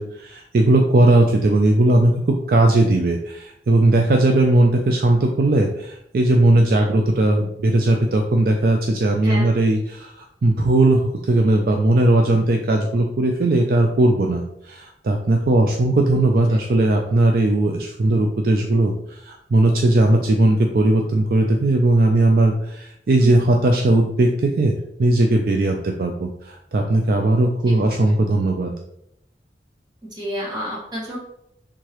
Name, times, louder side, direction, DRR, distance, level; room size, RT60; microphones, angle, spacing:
voice 1, 0.0-2.2 2.5-28.7, right 2 dB, 55° right, 3 dB, 0.4 m, -18 dB
voice 2, 9.2-9.5 23.2-23.4 27.6-27.8 30.1-31.2, equal, 25° right, -4 dB, 1.5 m, -29 dB
4.7 x 3.6 x 3.0 m, 0.77 s
head